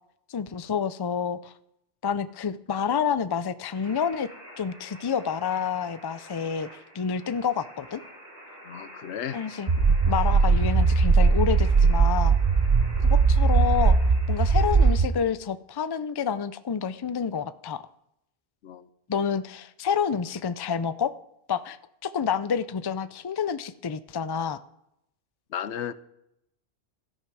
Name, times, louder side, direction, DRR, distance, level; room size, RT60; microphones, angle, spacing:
voice 1, 0.3-1.5 2.0-4.3 4.6-6.7 6.9-8.0 9.3-9.7 10.1-12.4 13.0-14.0 14.3-17.8 19.1-21.1 21.5-21.8 22.0-24.6, left 7 dB, 40° left, 0.3 m, -28 dB
sound 1, 3.7-14.9, equal, 15° right, 7.6 m, -47 dB
voice 2, 8.7-9.4 18.6-18.9 25.5-25.9, left 9 dB, 90° left, 1.0 m, -34 dB
sound 2, 9.7-15.1, right 4 dB, 35° right, 0.8 m, -20 dB
16.5 x 13.0 x 4.8 m
omnidirectional pair, 1.1 m